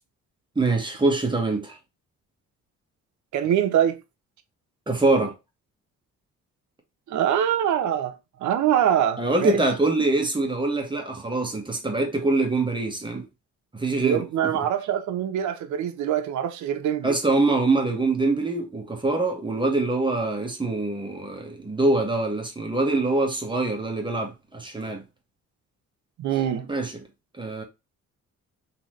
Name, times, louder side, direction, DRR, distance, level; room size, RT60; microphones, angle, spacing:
voice 1, 0.5-1.8 4.9-5.3 9.2-13.3 13.7-14.3 17.0-25.0 26.7-26.9 27.4-27.6, right 2 dB, 15° right, 1.3 m, -24 dB
voice 2, 3.3-4.0 7.1-8.1 8.4-9.6 14.0-17.2 26.2-26.7, right 10 dB, 75° right, 0.7 m, -24 dB
3.8 x 3.0 x 3.1 m
cardioid pair, 90°, 30 cm